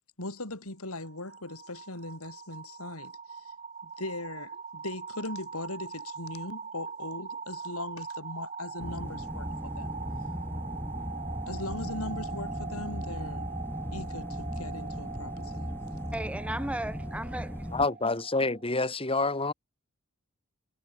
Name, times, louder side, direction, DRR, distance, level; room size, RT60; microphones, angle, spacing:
voice 1, 0.2-3.5 3.8-10.0 11.5-13.5 13.9-15.7, left 2 dB, 80° left, 5.6 m, -39 dB
sound 1, 0.9-18.7, right 5 dB, 35° right, 4.8 m, -42 dB
sound 2, 8.8-17.9, equal, 10° left, 4.7 m, -37 dB
voice 2, 16.1-17.6, right 1 dB, 5° right, 1.6 m, -35 dB
voice 3, 17.7-19.5, left 3 dB, 25° left, 3.1 m, -27 dB
head